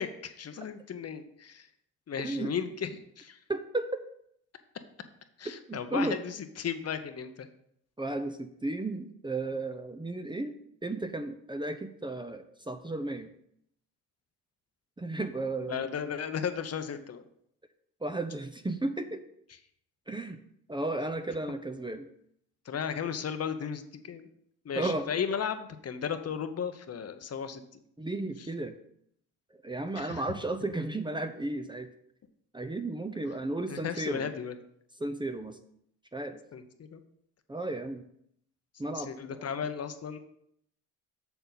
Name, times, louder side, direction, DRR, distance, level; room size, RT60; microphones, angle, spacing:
voice 1, 0.0-1.7 2.1-3.4 5.4-7.5 15.6-17.2 22.6-24.3 24.6-27.8 30.0-30.2 33.7-34.6 36.5-37.0 38.9-40.2, left 7 dB, 40° left, 9 dB, 0.9 m, -35 dB
voice 2, 3.5-3.9 5.7-6.2 8.0-10.6 10.8-13.3 15.0-15.9 18.0-19.2 20.1-20.4 20.7-22.1 24.8-25.1 28.0-28.7 29.5-31.9 32.5-34.3 35.0-35.6 36.1-36.4 37.5-38.0 38.8-39.4, right 2 dB, 10° right, 8 dB, 0.7 m, -34 dB
6.9 x 6.7 x 4.0 m, 0.71 s
hypercardioid pair, 60°, 37 cm